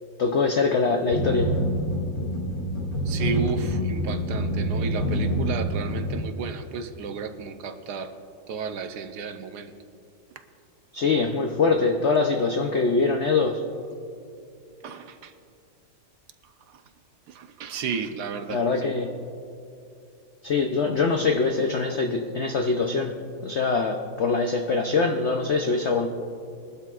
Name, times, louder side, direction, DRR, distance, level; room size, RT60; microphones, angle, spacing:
voice 1, 0.2-1.5 10.9-13.6 18.5-19.1 20.4-26.1, left 4 dB, 70° left, 3 dB, 0.6 m, -23 dB
sound 1, 1.1-6.2, equal, 50° left, 3.3 m, -26 dB
voice 2, 3.1-8.1 8.5-9.7 14.8-15.3 16.7-16.8 17.3-18.9, right 5 dB, 70° right, 8 dB, 1.2 m, -33 dB
21.5 x 12.0 x 2.4 m, 2.5 s
omnidirectional pair, 2.0 m